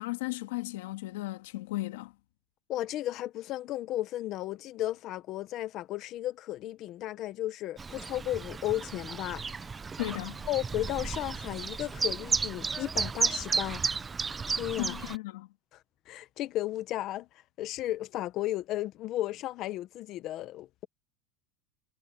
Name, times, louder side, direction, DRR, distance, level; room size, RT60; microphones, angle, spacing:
voice 1, 0.0-2.1 10.0-10.4 14.8-15.5, left 19 dB, 70° left, 1.8 m, -35 dB
voice 2, 2.7-9.4 10.5-13.8 14.5-15.0 15.7-15.8 16.1-17.3 17.6-20.9, left 14 dB, 30° left, 0.7 m, -34 dB
Chirp tweet, 7.8-15.2, right 5 dB, 10° right, 0.4 m, -33 dB
supercardioid pair, 175°, 0 cm